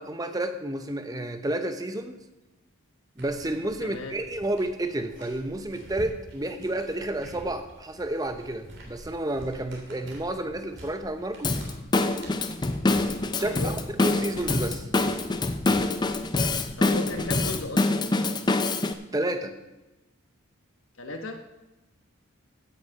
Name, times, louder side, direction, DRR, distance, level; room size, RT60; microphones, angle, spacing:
voice 1, 0.0-2.2 3.2-11.6 13.4-13.8 14.0-14.9 19.1-19.5, right 1 dB, 15° right, 8 dB, 0.7 m, -30 dB
sound 1, 3.2-17.6, right 1 dB, 55° right, 3.3 m, -47 dB
voice 2, 3.8-4.2 13.4-13.8 16.8-18.0 21.0-21.4, left 2 dB, 65° left, 5 dB, 1.2 m, -35 dB
Drum kit / Drum, 11.4-18.9, left 2 dB, 20° left, 0.4 m, -25 dB
15.5 x 6.4 x 5.3 m, 1.0 s
head